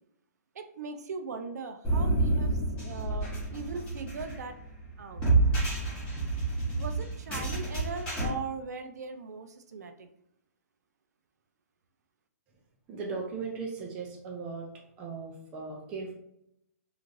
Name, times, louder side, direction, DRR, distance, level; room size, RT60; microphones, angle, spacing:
voice 1, 0.5-4.6 5.0-5.2 6.8-10.1, right 5 dB, 75° right, 7 dB, 0.4 m, -39 dB
sound 1, 1.8-8.3, right 2 dB, 10° left, 0.8 m, -29 dB
voice 2, 12.9-14.7 15.0-16.1, right 4 dB, 10° right, -1 dB, 0.3 m, -37 dB
3.1 x 2.4 x 2.5 m, 0.79 s
hypercardioid pair, 170°, 9 cm